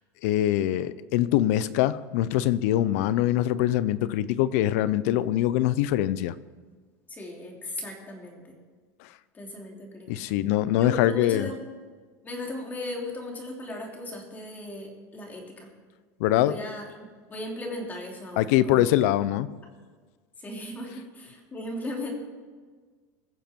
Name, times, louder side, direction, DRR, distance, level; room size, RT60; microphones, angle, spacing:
voice 1, 0.2-6.3 10.1-11.5 16.2-16.5 18.4-19.5, left 13 dB, 75° left, 17 dB, 0.6 m, -23 dB
voice 2, 7.1-8.6 9.3-10.1 10.7-11.6 12.2-15.7 16.4-18.8 20.4-22.1, left 1 dB, 20° left, 0 dB, 3.2 m, -37 dB
21.5 x 7.4 x 4.5 m, 1.5 s
supercardioid pair, 130°, 8 cm